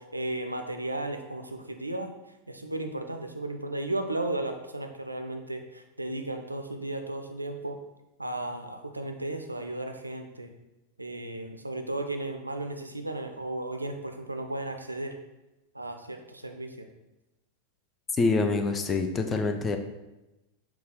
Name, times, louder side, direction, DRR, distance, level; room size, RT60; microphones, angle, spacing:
voice 1, 0.0-2.1 2.5-7.8 8.2-10.5 11.0-15.1 15.7-16.9, right 2 dB, 85° right, 5 dB, 0.3 m, -34 dB
voice 2, 18.2-19.8, left 3 dB, 20° left, 6 dB, 0.3 m, -26 dB
4.0 x 2.3 x 3.6 m, 0.99 s
figure-of-eight pair, 90°, 0 cm